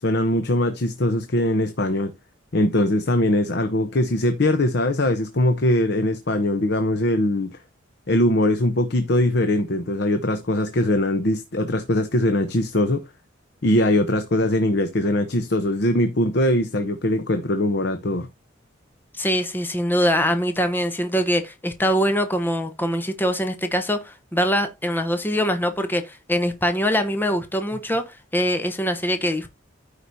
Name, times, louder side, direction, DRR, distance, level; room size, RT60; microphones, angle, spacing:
voice 1, 0.0-2.1 2.5-7.6 8.1-13.0 13.6-18.3, left 1 dB, 60° left, 0.8 m, -21 dB
voice 2, 19.2-29.5, equal, 10° left, 0.9 m, -23 dB
14.0 x 4.9 x 2.7 m
head